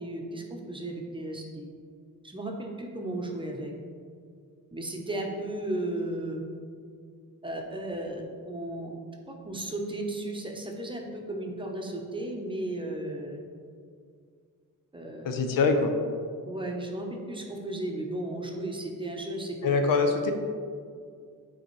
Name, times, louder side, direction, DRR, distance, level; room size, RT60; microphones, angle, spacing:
voice 1, 0.0-1.7 2.2-3.7 4.7-6.4 7.4-9.0 9.3-13.4 14.9-15.3 16.5-19.6, right 1 dB, 15° right, 1 dB, 0.7 m, -35 dB
voice 2, 15.2-15.9 19.6-20.3, left 4 dB, 80° left, 5 dB, 0.7 m, -24 dB
8.9 x 4.1 x 3.1 m, 2.2 s
cardioid pair, 140°, 33 cm